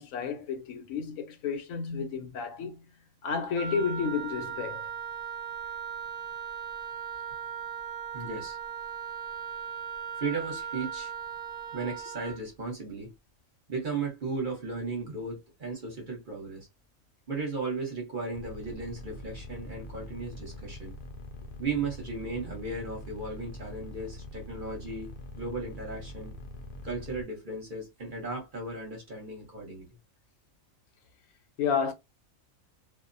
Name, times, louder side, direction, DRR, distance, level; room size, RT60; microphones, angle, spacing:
voice 1, 0.0-2.8 3.2-4.9 31.6-31.9, left 6 dB, 80° left, 1.0 m, -31 dB
Wind instrument woodwind instrument, 3.6-12.4, right 7 dB, 80° right, 0.4 m, -38 dB
voice 2, 8.1-8.6 10.2-11.1 11.7-13.1 13.7-16.7 17.3-20.9 21.6-25.1 25.3-26.3 26.8-29.9, right 3 dB, 40° right, 1.0 m, -35 dB
sound 1, 18.3-27.2, left 1 dB, 60° left, 0.7 m, -43 dB
2.5 x 2.0 x 2.5 m
omnidirectional pair, 1.4 m